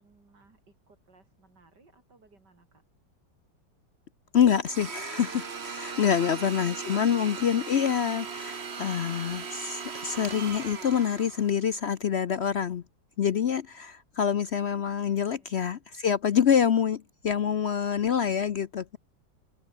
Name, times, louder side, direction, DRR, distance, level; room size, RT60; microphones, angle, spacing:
voice 1, 0.0-2.8 5.9-6.7 14.9-15.5, right 3 dB, 70° right, 5.2 m, -58 dB
voice 2, 4.3-12.8 13.2-19.0, left 8 dB, 60° left, 0.7 m, -26 dB
Domestic sounds home sounds, 4.7-11.7, right 5 dB, 40° right, 1.6 m, -38 dB
omnidirectional pair, 1.9 m